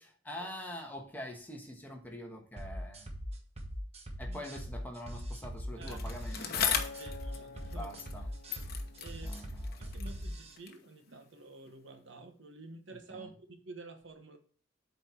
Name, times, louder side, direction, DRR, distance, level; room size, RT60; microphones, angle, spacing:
voice 1, 0.0-3.1 4.2-6.8 7.7-8.3 9.2-10.0 13.1-13.3, left 1 dB, 10° left, 2 dB, 1.3 m, -45 dB
sound 1, 2.6-10.6, equal, 30° right, 1.2 m, -41 dB
Bicycle, 5.9-8.2 8.5-10.9 11.6-11.7, left 8 dB, 50° left, 0.9 m, -37 dB
Acoustic guitar, 6.8-11.1 11.7-12.0, left 4 dB, 85° left, 0.9 m, -53 dB
voice 2, 7.0-7.9 9.0-9.4 9.8-14.4, right 3 dB, 65° right, 6 dB, 1.1 m, -50 dB
7.9 x 4.5 x 4.3 m, 0.43 s
head